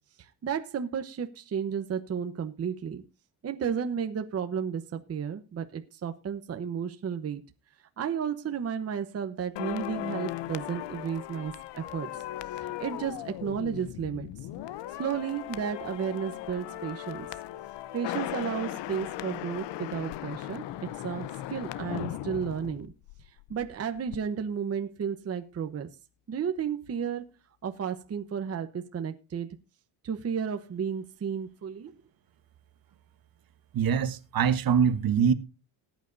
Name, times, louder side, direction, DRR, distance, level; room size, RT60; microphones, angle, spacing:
voice 1, 0.2-3.0 3.4-7.4 8.0-12.1 12.6-14.3 14.9-17.3 17.9-22.9 23.5-25.9 26.3-27.2 27.6-29.5 30.0-31.9, right 7 dB, 30° right, 1.0 m, -33 dB
sound 1, 9.6-23.7 24.0-24.2, left 13 dB, 60° left, 0.8 m, -38 dB
voice 2, 33.7-35.3, right 7 dB, 45° right, 1.2 m, -23 dB
19.5 x 9.3 x 2.7 m
cardioid pair, 130°, 47 cm